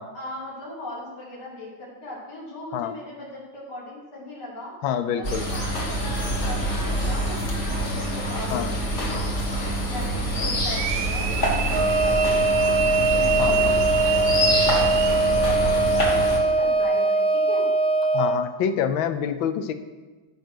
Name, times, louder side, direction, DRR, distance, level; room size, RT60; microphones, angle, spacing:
voice 1, 0.1-4.7 5.1-9.3 9.8-12.8 13.1-17.6, left 1 dB, 55° left, -5 dB, 3.7 m, -38 dB
voice 2, 4.8-5.4 8.5-8.7 13.4-13.8 18.1-19.7, left 8 dB, 80° left, 10 dB, 1.4 m, -26 dB
sound 1, 5.2-16.4, equal, 40° left, 1.7 m, -26 dB
sound 2, 10.7-15.4, right 13 dB, 75° right, 1.2 m, -30 dB
Wind instrument woodwind instrument, 11.7-18.4, right 2 dB, 50° right, 0.8 m, -21 dB
14.5 x 5.2 x 6.4 m, 1.3 s
omnidirectional pair, 2.2 m